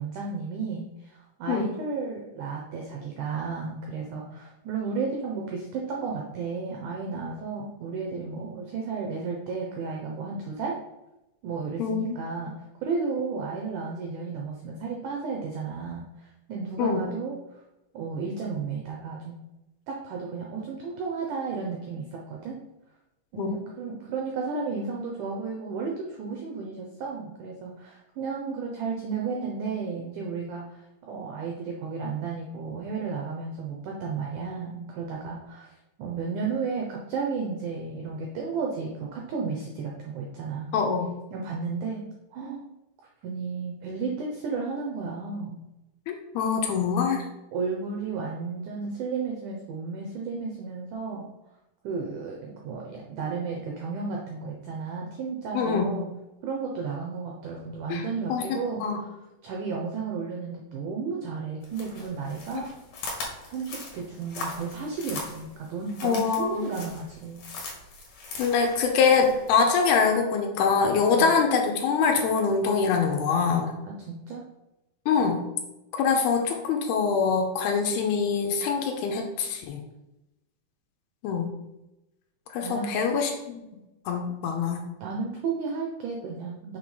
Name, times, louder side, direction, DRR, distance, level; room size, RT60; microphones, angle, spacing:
voice 1, 0.0-10.8 11.4-12.5 12.8-17.4 17.9-19.4 19.9-22.6 23.3-40.7 41.3-42.0 42.3-42.7 43.2-45.6 47.5-51.3 51.8-56.1 56.4-59.1 59.4-62.7 63.5-67.4 71.0-71.4 73.9-74.4 82.6-82.9 85.0-86.8, right 5 dB, 85° right, 0 dB, 1.8 m, -33 dB
voice 2, 40.7-41.1 46.1-47.2 55.5-56.0 57.9-58.4 58.8-59.0 62.5-62.6 66.0-66.6 68.4-73.7 75.1-75.4 75.9-79.8 81.2-81.5 82.5-83.3 84.1-84.9, left 5 dB, 80° left, 3 dB, 2.6 m, -24 dB
sound 1, 61.6-69.9, left 3 dB, 60° left, 2.6 m, -40 dB
6.6 x 3.5 x 5.5 m, 0.95 s
omnidirectional pair, 4.7 m